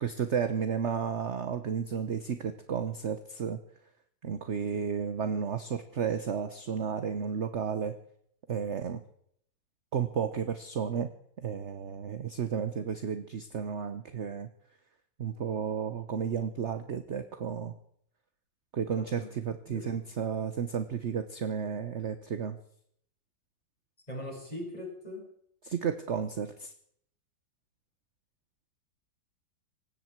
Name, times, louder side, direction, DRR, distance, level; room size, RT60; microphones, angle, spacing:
voice 1, 0.0-3.6 4.2-8.0 8.5-9.0 9.9-11.1 11.4-14.5 15.2-17.8 18.7-22.6 25.6-26.7, right 7 dB, 45° right, 10 dB, 1.0 m, -32 dB
voice 2, 18.9-19.3 19.7-20.0 24.1-25.3, left 1 dB, 20° left, -4 dB, 7.0 m, -41 dB
19.0 x 16.0 x 4.6 m, 0.68 s
omnidirectional pair, 2.1 m